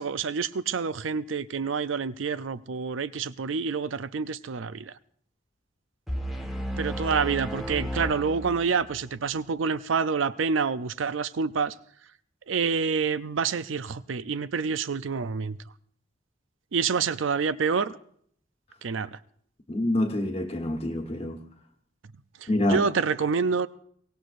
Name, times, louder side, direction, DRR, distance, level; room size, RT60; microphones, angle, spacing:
voice 1, 0.0-4.9 6.8-11.7 12.5-15.6 16.7-18.0 18.8-19.2 22.7-23.7, right 5 dB, 80° right, 0.5 m, -27 dB
sound 1, 6.1-9.0, equal, ahead, 1.3 m, -33 dB
voice 2, 19.7-21.4 22.5-22.8, left 1 dB, 30° left, 1.2 m, -26 dB
23.5 x 17.0 x 2.6 m
head